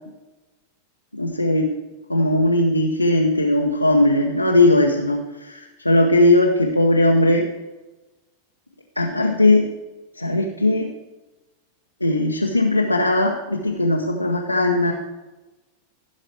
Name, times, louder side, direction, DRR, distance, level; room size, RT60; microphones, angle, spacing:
voice 1, 1.1-1.7 2.1-7.4 9.0-9.7 10.2-10.9 12.0-14.9, left 1 dB, 85° left, -1 dB, 1.1 m, -18 dB
15.5 x 6.4 x 4.6 m, 1.1 s
figure-of-eight pair, 90°, 0 cm